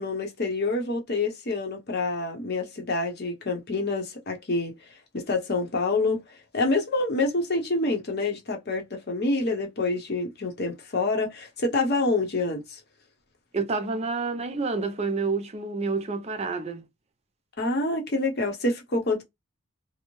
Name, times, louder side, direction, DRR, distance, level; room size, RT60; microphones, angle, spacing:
voice 1, 0.0-4.7 5.1-6.2 6.5-12.8 17.6-19.2, left 2 dB, 45° left, 0.8 m, -27 dB
voice 2, 13.5-16.8, right 4 dB, 30° right, 0.5 m, -28 dB
2.6 x 2.0 x 3.0 m
head